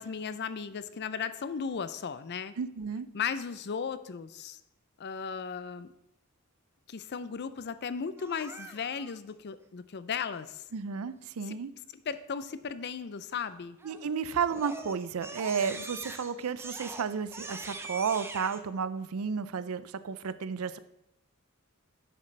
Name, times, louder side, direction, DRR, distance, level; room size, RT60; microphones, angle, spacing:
voice 1, 0.0-2.5 3.1-4.6 5.0-5.9 6.9-10.6 11.5-11.6 11.9-13.8, left 6 dB, 50° left, 13 dB, 0.5 m, -36 dB
voice 2, 2.6-3.1 10.7-11.7 13.8-20.8, right 6 dB, 75° right, 14 dB, 0.5 m, -32 dB
Crying sobbing, 8.2-9.1 13.8-14.1 14.5-18.6, right 3 dB, 10° right, 0.5 m, -43 dB
10.5 x 7.3 x 3.3 m, 0.83 s
head